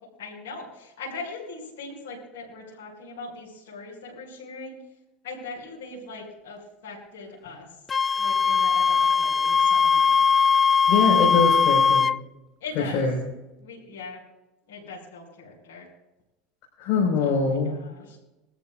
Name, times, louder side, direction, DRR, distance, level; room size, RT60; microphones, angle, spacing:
voice 1, 0.2-4.8 5.2-7.7 8.2-10.2 12.6-13.1 13.6-14.2 14.7-15.9 17.2-18.2, left 3 dB, 85° left, -5 dB, 5.8 m, -40 dB
Wind instrument woodwind instrument, 7.9-12.2, left 6 dB, 25° left, 0.3 m, -20 dB
voice 2, 10.9-12.1 12.8-13.2 16.8-17.8, left 4 dB, 60° left, -3 dB, 5.2 m, -23 dB
23.0 x 13.5 x 2.6 m, 0.99 s
supercardioid pair, 100°, 0 cm